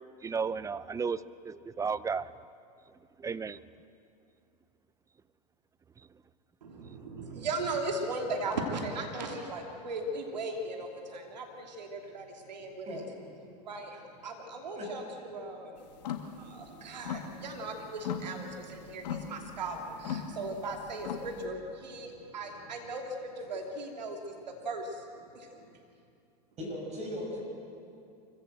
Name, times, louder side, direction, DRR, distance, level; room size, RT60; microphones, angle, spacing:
voice 1, 0.2-2.3 3.2-3.6 6.8-6.9, right 5 dB, 15° right, 17 dB, 0.6 m, -34 dB
voice 2, 6.6-13.0 13.5-25.8, right 2 dB, 90° right, 2 dB, 2.7 m, -38 dB
sound 1, 15.9-16.3 16.7-17.7 18.0-21.4, left 8 dB, 80° left, 1.6 m, -39 dB
voice 3, 26.6-27.4, left 1 dB, 30° right, 0 dB, 7.3 m, -37 dB
24.5 x 16.0 x 7.8 m, 2.5 s
hypercardioid pair, 105°, 21 cm